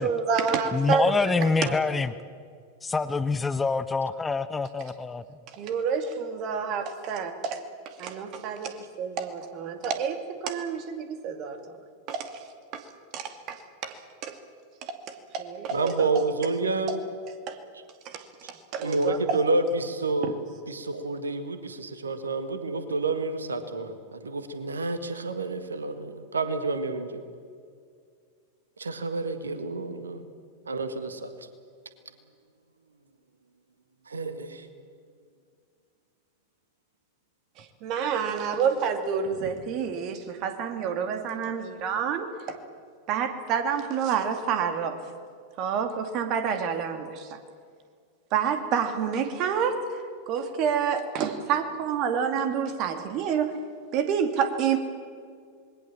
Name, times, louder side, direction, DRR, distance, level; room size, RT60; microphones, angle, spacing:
voice 1, 0.0-1.8 4.8-4.9 5.5-11.6 12.1-12.4 12.7-12.9 13.1-14.4 14.8-16.1 17.5-17.6 18.0-19.4 20.2-20.4 37.6-42.6 43.1-45.0 45.6-47.4 48.3-53.6 53.9-54.8, right 7 dB, 40° right, 8 dB, 2.3 m, -29 dB
voice 2, 0.7-2.1 2.8-5.2, left 4 dB, 15° left, 12 dB, 0.8 m, -25 dB
voice 3, 15.7-17.0 18.8-20.4 20.7-27.2 28.8-30.2 30.7-31.3 34.1-34.7, right 3 dB, 75° right, 10 dB, 1.7 m, -29 dB
26.5 x 21.0 x 7.3 m, 2.2 s
figure-of-eight pair, 90°, 0 cm